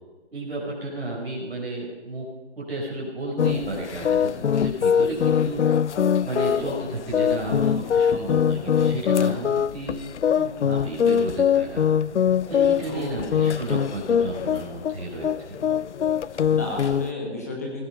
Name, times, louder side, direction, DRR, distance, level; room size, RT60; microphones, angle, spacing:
voice 1, 0.3-2.3 2.6-5.6 6.2-9.9 10.3-11.8 12.5-15.6, right 2 dB, 60° right, -4 dB, 4.3 m, -32 dB
sound 1, 3.4-17.1, left 8 dB, 85° left, 0.5 m, -23 dB
voice 2, 7.4-7.8 12.9-13.5 16.2-17.9, left 2 dB, 15° left, -1 dB, 1.2 m, -33 dB
15.5 x 10.5 x 5.4 m, 1.2 s
figure-of-eight pair, 170°, 34 cm